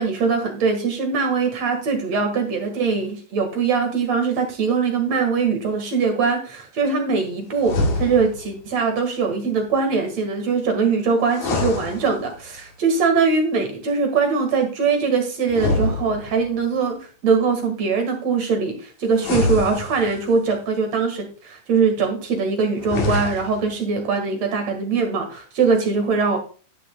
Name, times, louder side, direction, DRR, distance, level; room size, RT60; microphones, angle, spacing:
voice 1, 0.0-17.0 17.2-26.4, right 5 dB, 60° right, 4 dB, 2.9 m, -22 dB
sound 1, 7.6-8.5 11.2-12.6 15.5-16.6 19.1-20.4 22.7-23.7, left 2 dB, 70° left, 3.5 m, -25 dB
11.0 x 9.9 x 2.3 m, 0.38 s
omnidirectional pair, 3.7 m